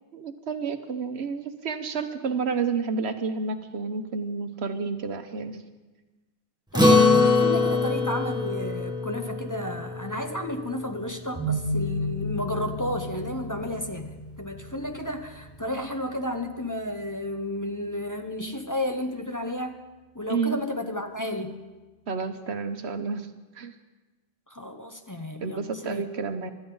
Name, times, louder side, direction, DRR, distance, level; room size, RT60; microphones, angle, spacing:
voice 1, 0.1-5.6 20.3-20.6 22.1-23.3 23.5-23.7 25.4-26.5, right 5 dB, 80° right, 8 dB, 1.3 m, -30 dB
voice 2, 6.7-19.8 20.1-21.6 24.5-26.0, left 1 dB, 20° left, 4 dB, 0.9 m, -32 dB
Acoustic guitar, 6.7-11.4, left 3 dB, 5° right, 1.6 m, -23 dB
sound 1, 11.3-17.1, equal, 25° right, 4.0 m, -34 dB
25.0 x 13.0 x 3.9 m, 1.2 s
omnidirectional pair, 1.1 m